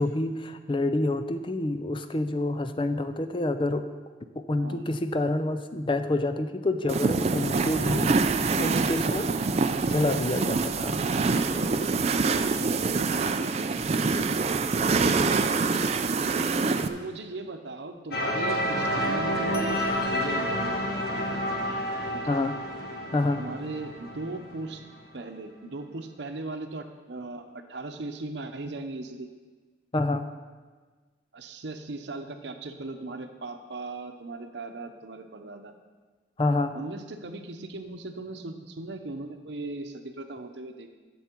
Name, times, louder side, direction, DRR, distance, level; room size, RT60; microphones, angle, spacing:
voice 1, 0.0-3.9 4.3-8.1 8.5-9.3 9.9-11.0 22.3-22.6 23.1-23.4 29.9-30.3 36.4-36.8, left 2 dB, 30° left, 10 dB, 0.5 m, -27 dB
voice 2, 4.6-4.9 7.5-8.0 12.4-13.7 14.0-16.3 16.9-19.8 20.1-21.7 22.1-22.4 23.4-24.8 25.1-29.3 31.3-35.7 36.7-40.9, right 2 dB, 75° right, 6 dB, 0.8 m, -38 dB
sound 1, 6.9-16.9, right 4 dB, 35° right, 0.4 m, -25 dB
sound 2, 18.1-24.9, equal, 55° left, 1.5 m, -29 dB
11.5 x 7.1 x 4.5 m, 1.4 s
head